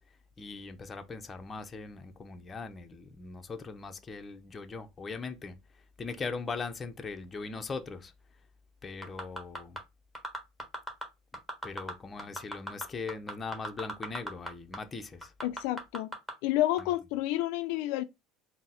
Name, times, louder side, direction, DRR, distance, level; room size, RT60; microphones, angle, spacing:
voice 1, 0.4-5.5 6.0-8.0 8.8-9.8 11.6-15.1, left 4 dB, 20° left, 0.6 m, -40 dB
sound 1, 9.0-9.8 10.1-11.0 11.3-11.9 12.2-14.5 14.7-14.8 15.2-16.3 16.8-16.9, equal, 5° right, 1.1 m, -36 dB
voice 2, 15.4-16.1 16.4-18.0, left 14 dB, 75° left, 0.3 m, -29 dB
3.9 x 2.0 x 4.0 m
supercardioid pair, 120°, 0 cm